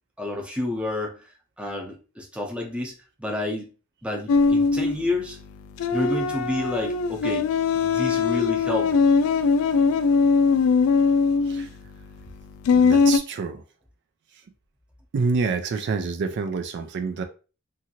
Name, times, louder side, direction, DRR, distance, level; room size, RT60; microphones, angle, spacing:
voice 1, 0.2-2.9 3.2-3.7 4.0-5.4 5.9-7.5 7.7-9.0, left 1 dB, 5° right, 0 dB, 0.6 m, -29 dB
sound 1, 4.3-13.2, left 5 dB, 90° left, 0.3 m, -21 dB
voice 2, 12.7-13.6 15.1-17.2, right 4 dB, 55° right, 7 dB, 0.3 m, -27 dB
2.8 x 2.5 x 2.8 m, 0.35 s
head